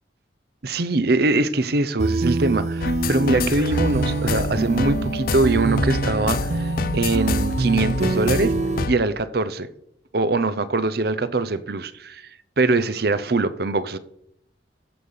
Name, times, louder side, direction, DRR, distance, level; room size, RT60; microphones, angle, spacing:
voice 1, 0.6-8.5 8.9-9.7 10.1-12.3 12.6-14.0, right 2 dB, 55° right, 0.7 m, -22 dB
sound 1, 2.0-8.8, right 3 dB, 40° right, 0.3 m, -25 dB
sound 2, 2.8-9.0, left 4 dB, 50° left, 0.5 m, -28 dB
14.5 x 6.7 x 5.5 m
head